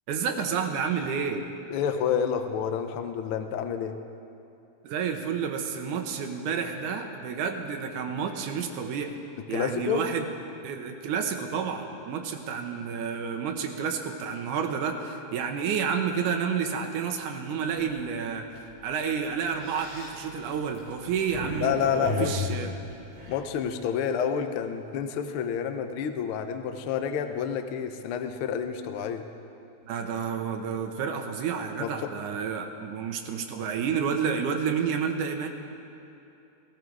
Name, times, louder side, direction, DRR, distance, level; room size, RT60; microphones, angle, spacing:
voice 1, 0.1-1.4 4.8-9.1 9.5-10.3 10.6-22.7 29.8-35.5, right 6 dB, 85° right, 4 dB, 2.4 m, -30 dB
voice 2, 1.7-4.0 9.5-10.0 21.6-22.3 23.3-29.3 31.8-32.1, left 8 dB, 90° left, 7 dB, 1.1 m, -29 dB
sound 1, 17.7-18.0 18.4-18.6 19.3-21.6 22.0-23.8, left 2 dB, 45° right, 4.1 m, -35 dB
16.5 x 15.0 x 4.7 m, 2.8 s
omnidirectional pair, 3.5 m